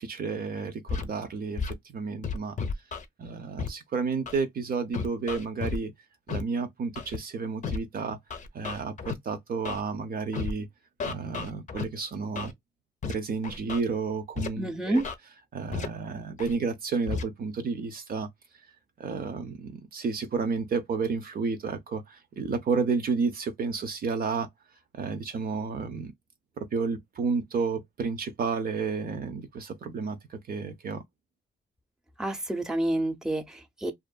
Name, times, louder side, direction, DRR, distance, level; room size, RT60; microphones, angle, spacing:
voice 1, 0.0-2.6 3.2-5.9 6.3-8.2 8.5-10.7 11.0-12.5 13.1-15.0 15.5-18.3 19.0-24.5 24.9-26.1 26.6-31.0, right 4 dB, 50° right, 0.6 m, -31 dB
Scratching (performance technique), 0.9-1.1 1.6-1.7 2.2-3.1 3.6-3.7 4.3-4.4 4.9-5.8 6.3-6.4 7.0-7.2 7.6-7.8 8.3-9.1 9.7-9.8 10.3-10.5 11.0-11.8 12.4-12.5 13.0-13.1 13.4-13.8 14.4-14.5 15.0-15.1 15.7-15.9 16.4-16.5 17.1-17.2, left 5 dB, 40° left, 0.6 m, -32 dB
voice 2, 14.6-15.0 32.2-33.9, right 1 dB, 5° right, 0.7 m, -28 dB
2.6 x 2.4 x 2.2 m
cardioid pair, 90°, 20 cm